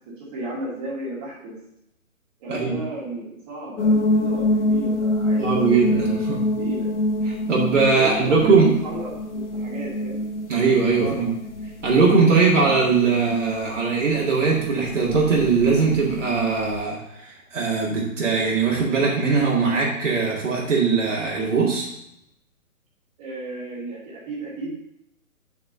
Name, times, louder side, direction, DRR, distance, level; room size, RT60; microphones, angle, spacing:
voice 1, 0.1-1.6 2.4-5.6 5.8-6.9 7.8-10.3 10.9-11.4 23.2-24.8, right 2 dB, 25° right, -6 dB, 2.4 m, -34 dB
sound 1, 3.8-16.8, left 1 dB, 55° left, 1.1 m, -26 dB
voice 2, 5.4-6.4 7.3-8.7 10.5-11.3 11.8-21.9, right 4 dB, 60° right, -4 dB, 2.0 m, -20 dB
5.2 x 4.9 x 6.4 m, 0.81 s
hypercardioid pair, 160°, 42 cm